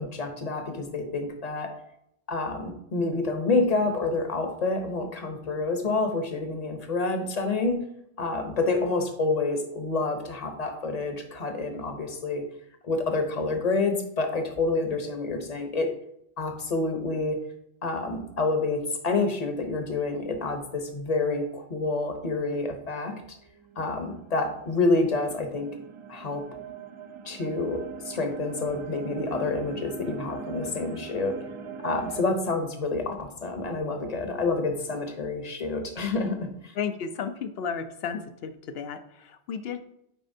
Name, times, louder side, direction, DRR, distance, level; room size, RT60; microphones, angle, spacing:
voice 1, 0.0-1.7 2.3-7.9 8.2-12.5 12.8-15.9 16.4-17.5 17.8-23.2 23.8-26.5 27.3-31.4 31.8-36.7, left 3 dB, 40° left, 6 dB, 0.9 m, -28 dB
sound 1, 23.5-32.2, right 6 dB, 50° right, 0.3 m, -41 dB
voice 2, 36.7-39.8, left 6 dB, 75° left, 9 dB, 0.8 m, -33 dB
9.2 x 4.2 x 2.7 m, 0.76 s
omnidirectional pair, 1.0 m